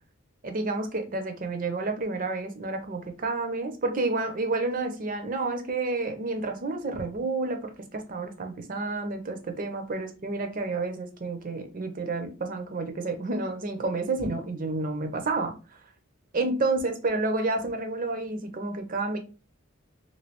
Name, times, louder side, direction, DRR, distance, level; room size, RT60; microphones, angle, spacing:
voice 1, 0.4-15.6 16.3-19.2, right 3 dB, 40° right, 6 dB, 0.5 m, -30 dB
3.1 x 2.7 x 2.9 m, 0.34 s
head